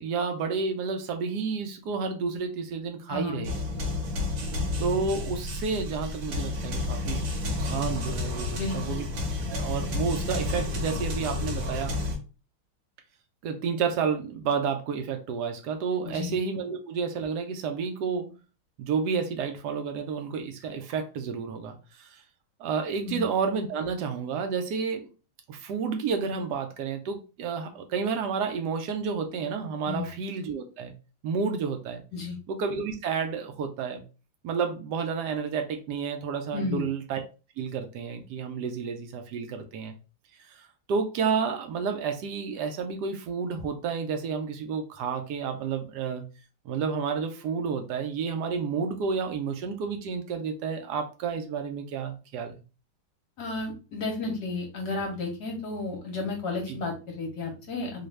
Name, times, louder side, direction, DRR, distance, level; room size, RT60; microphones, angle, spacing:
voice 1, 0.0-3.6 4.8-9.1 9.4-12.0 13.4-18.3 18.8-22.2 22.6-25.1 25.5-30.9 31.2-32.0 32.5-34.0 34.4-37.2 37.6-40.0 40.5-46.2 46.6-52.5 56.7-56.8, right 5 dB, 70° right, 5 dB, 1.0 m, -30 dB
voice 2, 3.1-3.5 8.5-9.0 16.0-16.4 23.1-23.2 29.8-30.1 32.1-32.4 36.5-36.9 53.4-58.1, left 3 dB, 60° left, 1 dB, 1.2 m, -32 dB
sound 1, 3.4-12.1, left 2 dB, 85° right, 1.8 m, -31 dB
3.8 x 2.4 x 3.2 m, 0.32 s
omnidirectional pair, 2.4 m